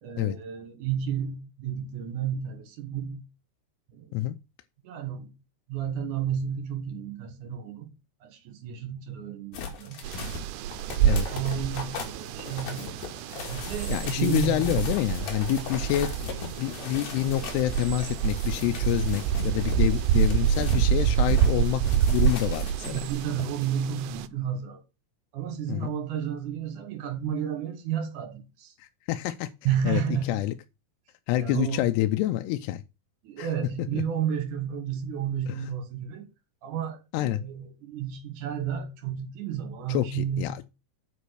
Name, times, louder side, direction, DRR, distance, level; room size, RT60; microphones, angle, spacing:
voice 1, 0.0-3.2 3.9-4.3 4.8-5.3 5.7-7.9 8.2-10.0 10.9-13.0 13.5-14.7 15.5-15.7 22.8-24.8 25.3-28.7 29.6-30.5 31.3-31.9 33.2-36.3 36.6-40.6, right 8 dB, 60° right, 2.5 m, -32 dB
sound 1, 9.5-20.9 21.3-23.7 24.0-24.1, left 5 dB, 60° left, 3.6 m, -39 dB
sound 2, 10.0-24.3, right 9 dB, 90° right, 2.9 m, -27 dB
voice 2, 13.9-16.1 16.6-21.8 22.1-23.0 25.7-25.9 28.8-29.5 29.9-30.5 31.3-32.8 33.4-33.5 34.0-34.1 35.5-35.7 37.1-37.4 39.9-40.6, left 15 dB, 80° left, 2.6 m, -27 dB
8.2 x 5.4 x 6.4 m
omnidirectional pair, 4.9 m